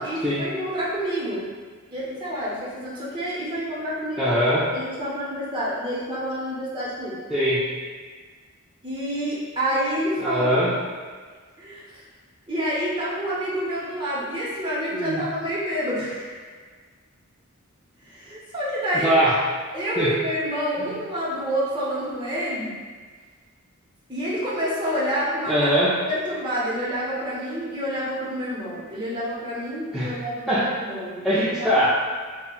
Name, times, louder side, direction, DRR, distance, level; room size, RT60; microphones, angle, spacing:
voice 1, 0.0-1.5 1.9-4.3 4.7-7.2 8.8-10.5 11.6-11.8 12.5-16.3 18.1-19.3 19.7-22.7 24.1-25.7 26.1-31.8, equal, 20° right, -7 dB, 0.8 m, -28 dB
voice 2, 4.2-4.7 7.3-7.6 10.2-10.7 14.9-15.2 18.9-19.3 20.0-20.1 20.8-20.9 25.5-26.0 29.9-30.2 30.5-30.7 31.2-31.9, equal, ahead, -12 dB, 0.4 m, -21 dB
5.2 x 2.3 x 2.3 m, 1.5 s
head